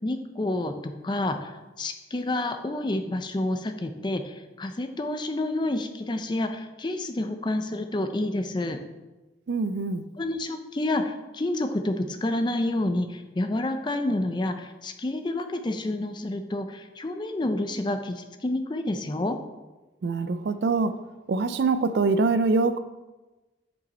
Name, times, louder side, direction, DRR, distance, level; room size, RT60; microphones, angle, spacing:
voice 1, 0.0-8.8 10.2-19.4, left 1 dB, 25° left, 7 dB, 0.5 m, -29 dB
voice 2, 9.5-10.0 20.0-20.9 21.3-22.8, right 3 dB, 60° right, 11 dB, 0.4 m, -24 dB
6.7 x 5.4 x 4.2 m, 1.1 s
head